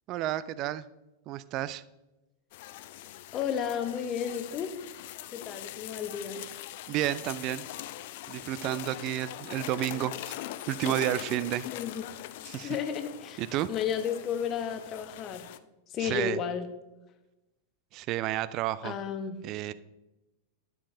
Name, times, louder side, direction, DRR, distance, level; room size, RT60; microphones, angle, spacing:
voice 1, 0.1-0.9 1.3-1.8 6.9-7.7 8.3-10.3 10.7-11.7 12.4-12.8 13.4-13.7 16.0-16.4 17.9-18.9 19.4-19.7, right 13 dB, 40° right, 17 dB, 0.3 m, -31 dB
sound 1, 2.5-15.6, left 14 dB, 50° left, 0.4 m, -42 dB
voice 2, 3.3-4.7 5.3-6.4 11.6-12.0 12.6-13.4 13.7-15.5 15.9-16.7 18.8-19.4, left 8 dB, 30° left, 8 dB, 0.9 m, -32 dB
11.5 x 7.0 x 2.7 m, 0.99 s
figure-of-eight pair, 90°, 0 cm